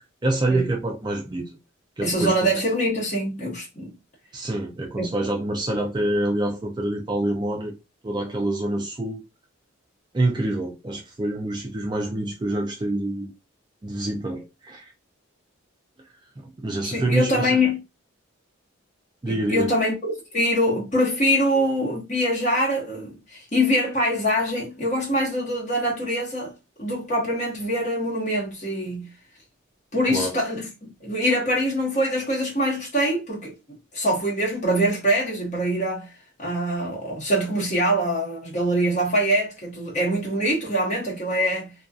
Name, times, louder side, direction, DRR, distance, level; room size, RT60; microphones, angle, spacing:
voice 1, 0.0-1.5 2.0-2.5 4.3-7.7 8.0-9.2 10.1-13.3 13.8-14.8 16.4-17.6 19.2-19.7 30.1-30.3, right 1 dB, 20° right, 0.4 m, -26 dB
voice 2, 2.0-3.9 5.0-5.1 16.8-17.8 19.3-20.0 20.3-26.5 26.8-29.1 29.9-33.5 33.9-36.1 36.4-41.7, equal, 35° left, 1.0 m, -24 dB
2.6 x 2.3 x 2.3 m
head